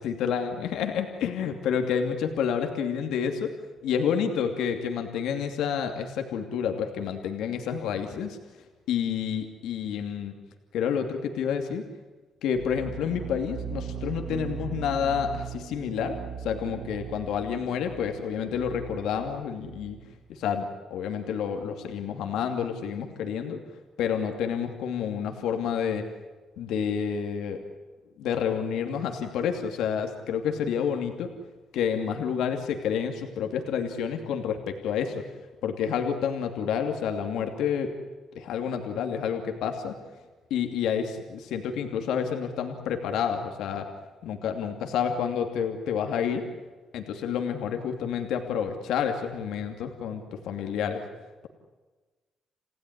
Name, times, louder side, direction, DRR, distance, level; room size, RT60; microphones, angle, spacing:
voice 1, 0.0-3.5 3.8-8.4 8.9-10.3 10.7-11.8 12.4-20.0 20.3-23.6 24.0-26.0 26.6-27.6 28.2-31.3 31.7-35.2 35.6-37.9 38.3-39.9 40.5-43.9 44.2-46.4 46.9-51.0, left 7 dB, 85° left, 5 dB, 2.7 m, -29 dB
sound 1, 12.5-20.2, right 8 dB, 65° right, 1.6 m, -39 dB
29.5 x 16.5 x 9.9 m, 1.3 s
cardioid pair, 90°, 0 cm